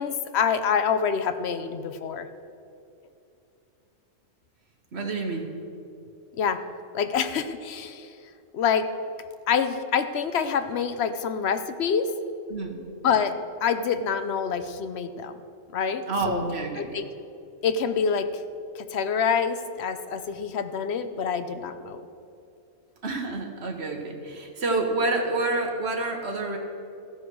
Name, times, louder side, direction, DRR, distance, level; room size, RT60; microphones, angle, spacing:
voice 1, 0.0-2.3 6.4-6.6 6.9-8.1 8.5-8.9 9.5-12.1 13.0-13.3 13.6-15.3 15.7-16.5 16.8-17.1 17.6-18.3 18.8-22.0, left 6 dB, 60° left, 10 dB, 0.9 m, -26 dB
voice 2, 4.9-5.5 12.5-12.8 16.1-16.9 23.0-26.6, right 3 dB, 55° right, 3 dB, 1.7 m, -28 dB
14.0 x 12.0 x 4.7 m, 2.7 s
omnidirectional pair, 1.3 m